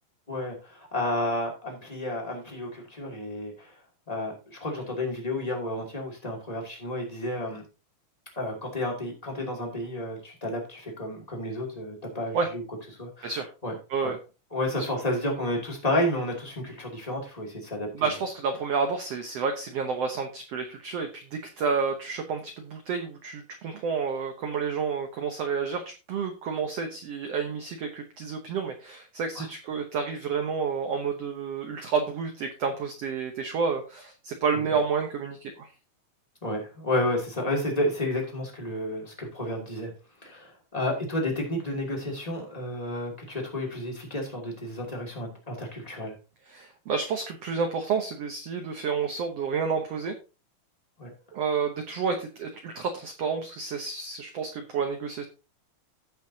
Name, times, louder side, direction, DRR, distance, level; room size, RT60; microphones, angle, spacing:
voice 1, 0.3-3.7 4.1-7.6 8.4-12.6 13.0-13.7 14.0-14.1 14.5-18.1 29.3-29.5 34.5-34.6 36.4-39.9 40.2-46.1 51.0-51.1, left 1 dB, 10° left, 0 dB, 2.3 m, -31 dB
voice 2, 17.9-25.8 26.1-35.7 46.5-50.1 51.3-55.2, right 5 dB, 65° right, 5 dB, 1.6 m, -30 dB
16.5 x 5.8 x 2.8 m, 0.31 s
omnidirectional pair, 3.9 m